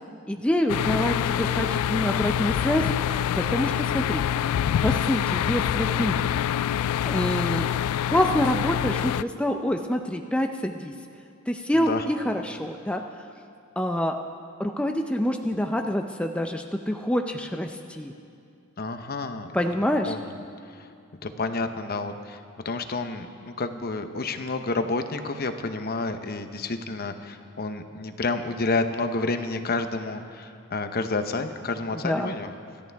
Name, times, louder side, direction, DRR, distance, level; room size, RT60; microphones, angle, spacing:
voice 1, 0.3-4.2 4.8-6.1 7.0-7.7 8.1-10.9 11.5-13.0 13.8-14.2 14.6-18.1 19.5-20.1 32.0-32.3, equal, 5° left, 3 dB, 0.5 m, -26 dB
sound 1, 0.7-9.2, left 10 dB, 90° left, 0.3 m, -26 dB
voice 2, 11.7-12.0 18.8-19.5 20.0-20.2 20.8-20.9 21.2-22.4 22.6-32.5, left 3 dB, 45° left, 8 dB, 0.8 m, -29 dB
26.5 x 13.5 x 3.5 m, 2.4 s
head